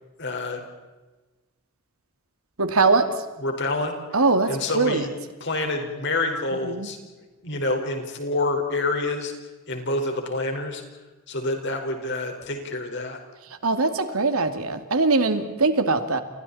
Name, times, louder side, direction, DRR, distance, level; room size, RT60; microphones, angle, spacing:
voice 1, 0.2-0.6 3.4-5.1 5.4-7.0 7.4-9.3 9.7-10.8 11.3-13.2, left 2 dB, 55° left, 3 dB, 4.9 m, -27 dB
voice 2, 2.6-3.1 4.1-4.5 4.8-5.0 6.7-6.9 13.6-16.2, right 3 dB, 80° right, 8 dB, 2.5 m, -21 dB
30.0 x 29.0 x 4.3 m, 1.2 s
head